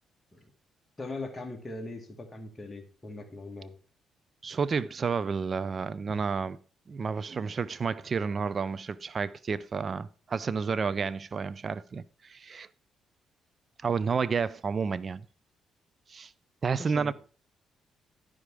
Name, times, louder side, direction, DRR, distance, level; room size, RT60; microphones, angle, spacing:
voice 1, 1.0-3.7 16.8-17.1, left 2 dB, 20° left, 2.2 m, -40 dB
voice 2, 4.4-6.6 6.9-12.7 13.8-15.2 16.1-16.3 16.6-17.1, right 5 dB, 40° right, 0.4 m, -30 dB
11.5 x 5.0 x 4.8 m
cardioid pair, 90°, 0 cm